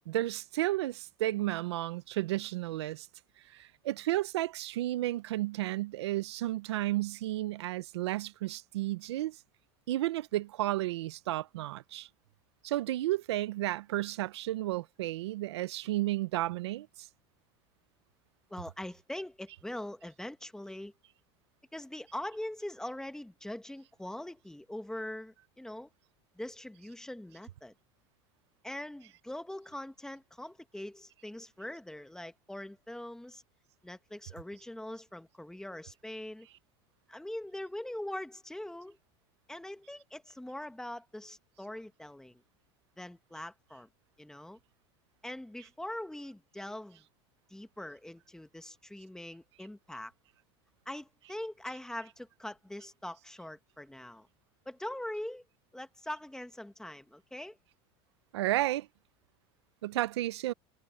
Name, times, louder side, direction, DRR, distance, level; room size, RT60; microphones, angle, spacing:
voice 1, 0.1-3.1 3.5-9.4 9.9-12.1 12.6-17.1 58.3-58.9 59.8-60.5, right 16 dB, 90° right, 0.8 m, -32 dB
voice 2, 18.5-20.9 21.7-25.9 26.3-27.7 28.6-33.4 33.8-36.5 37.1-39.0 39.5-42.4 43.0-43.9 44.2-44.6 45.2-47.0 47.5-50.1 50.8-54.3 54.6-55.4 55.7-57.6, left 1 dB, 5° left, 1.7 m, -42 dB
supercardioid pair, 110°, 14 cm